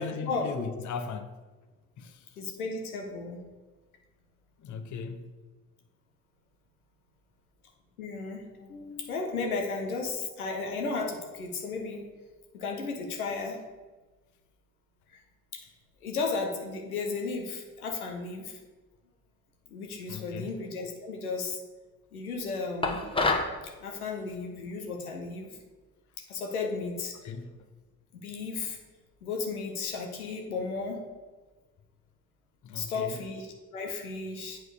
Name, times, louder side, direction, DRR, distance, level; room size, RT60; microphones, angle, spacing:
voice 1, 0.0-1.4 2.0-2.2 4.6-5.3 20.1-20.5 27.1-27.7 32.6-33.2, left 5 dB, 45° left, 0.8 m, -38 dB
voice 2, 2.4-3.4 8.0-12.0 12.5-13.6 15.1-15.2 15.5-15.6 16.0-18.6 19.7-21.6 22.1-23.0 23.8-25.6 26.3-27.2 28.2-28.8 29.2-31.0 32.7-34.6, left 4 dB, 90° left, 0.9 m, -34 dB
sound 1, 22.8-23.6, left 2 dB, 10° left, 1.1 m, -26 dB
7.8 x 4.6 x 4.9 m
hypercardioid pair, 45°, 43 cm